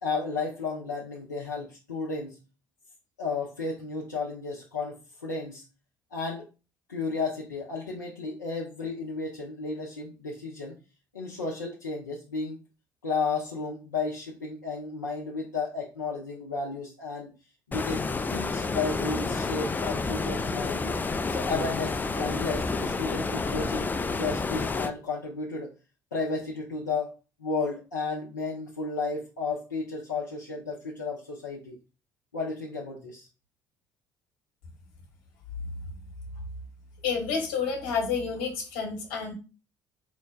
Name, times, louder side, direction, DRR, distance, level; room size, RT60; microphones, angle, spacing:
voice 1, 0.0-2.4 3.2-5.6 6.1-6.5 6.9-10.7 11.1-12.6 13.0-17.3 17.7-18.0 18.3-21.0 21.3-25.7 26.1-27.1 27.4-31.8 32.3-33.3, left 4 dB, 85° left, -4 dB, 0.5 m, -33 dB
Stream, 17.7-24.9, left 3 dB, 20° left, 0.4 m, -29 dB
voice 2, 37.0-39.3, left 6 dB, 65° left, 2 dB, 1.0 m, -29 dB
4.7 x 2.1 x 3.2 m, 0.32 s
figure-of-eight pair, 50°, 10 cm